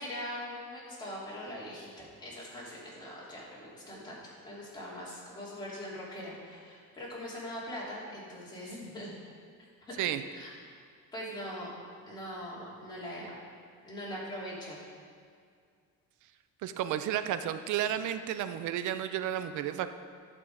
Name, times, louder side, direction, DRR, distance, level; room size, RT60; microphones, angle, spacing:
voice 1, 0.0-1.9 2.2-9.1 9.9-10.1 10.3-10.5 11.1-11.7 12.1-13.3 13.8-14.8, equal, 10° left, -7 dB, 3.0 m, -41 dB
voice 2, 16.6-20.0, right 11 dB, 60° right, 10 dB, 0.6 m, -32 dB
11.5 x 7.4 x 4.8 m, 2.2 s
cardioid pair, 160°, 34 cm